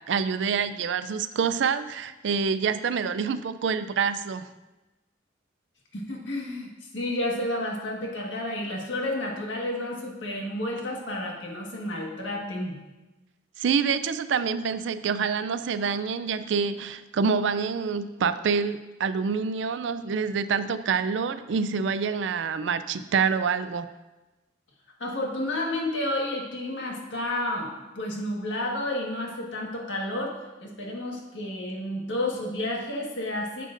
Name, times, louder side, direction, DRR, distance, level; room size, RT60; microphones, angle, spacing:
voice 1, 0.0-4.4 13.6-23.9, right 6 dB, 75° right, 13 dB, 0.4 m, -26 dB
voice 2, 5.9-12.8 25.0-27.7 27.9-30.3 30.6-33.7, left 1 dB, 80° left, -1 dB, 1.5 m, -31 dB
10.0 x 6.7 x 2.6 m, 1.1 s
head